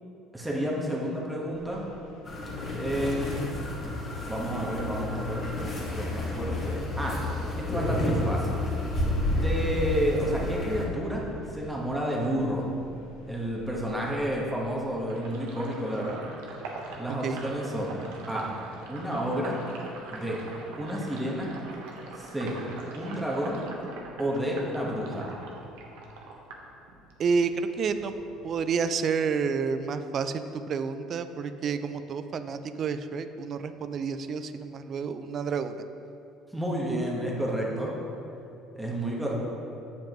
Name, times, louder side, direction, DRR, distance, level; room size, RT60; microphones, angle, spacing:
voice 1, 0.3-1.9 2.7-3.5 4.2-5.5 5.9-7.2 7.7-8.6 9.3-12.6 13.2-16.2 16.9-18.0 18.3-18.5 18.9-19.6 20.1-20.4 20.8-21.5 22.1-22.6 22.9-23.6 24.2-25.3 36.5-37.9 38.7-39.3, equal, 5° right, -3 dB, 1.3 m, -30 dB
sound 1, 1.5-14.1, left 1 dB, 85° left, 1.0 m, -51 dB
sound 2, 2.3-10.9, left 1 dB, 35° left, 1.7 m, -30 dB
Sink (filling or washing), 15.1-27.4 27.7-29.1, right 3 dB, 90° right, 1.0 m, -43 dB
voice 2, 27.2-28.1 28.4-35.8, right 5 dB, 45° right, 10 dB, 0.4 m, -29 dB
7.6 x 7.1 x 3.1 m, 2.7 s
cardioid pair, 110°, 0 cm